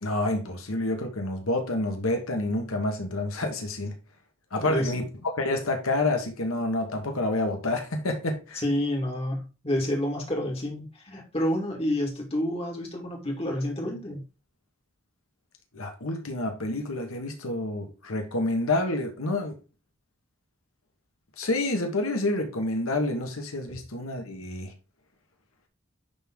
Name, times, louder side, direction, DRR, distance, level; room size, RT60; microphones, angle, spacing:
voice 1, 0.0-3.9 4.5-8.6 15.7-19.6 21.4-24.7, left 2 dB, 85° left, 1.4 m, -28 dB
voice 2, 4.6-5.0 8.6-14.2 23.7-23.8, left 1 dB, 30° left, 2.2 m, -29 dB
10.5 x 3.7 x 3.8 m
head